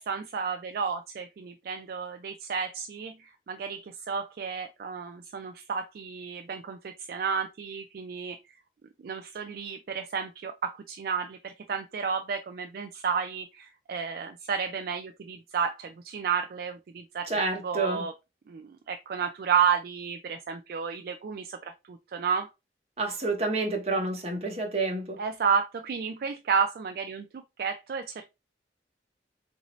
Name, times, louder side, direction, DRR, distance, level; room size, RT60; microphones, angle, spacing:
voice 1, 0.0-8.4 9.0-17.3 17.6-18.1 18.5-22.5 25.2-28.3, right 6 dB, 55° right, 0.3 m, -31 dB
voice 2, 17.3-18.1 23.0-25.2, right 3 dB, 35° right, 1.0 m, -29 dB
4.0 x 2.6 x 3.0 m
head